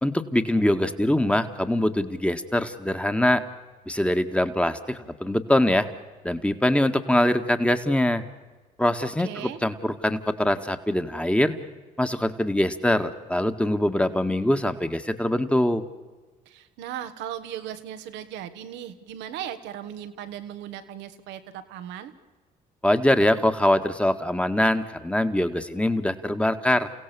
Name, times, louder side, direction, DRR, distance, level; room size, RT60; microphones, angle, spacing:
voice 1, 0.0-3.4 3.9-5.9 6.2-8.2 8.8-11.6 12.0-15.8 22.8-26.9, left 1 dB, 5° left, 8 dB, 1.9 m, -23 dB
voice 2, 9.2-9.6 16.4-22.1, right 10 dB, 80° right, 9 dB, 1.6 m, -37 dB
29.5 x 16.5 x 7.1 m, 1.3 s
supercardioid pair, 60°, 18 cm